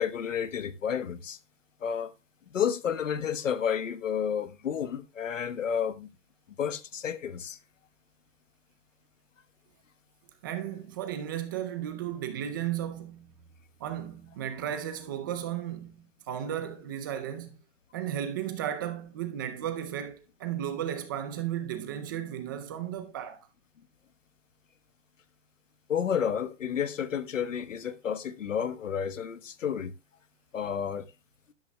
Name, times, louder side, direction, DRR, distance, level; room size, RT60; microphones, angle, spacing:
voice 1, 0.0-1.4 1.8-2.1 2.5-6.1 6.6-7.6 25.9-29.9 30.5-31.1, left 8 dB, 85° left, 1.3 m, -31 dB
voice 2, 10.4-13.3 13.8-17.6 17.9-23.4, right 10 dB, 15° right, 0.5 m, -34 dB
12.5 x 11.0 x 2.3 m
hypercardioid pair, 155°, 37 cm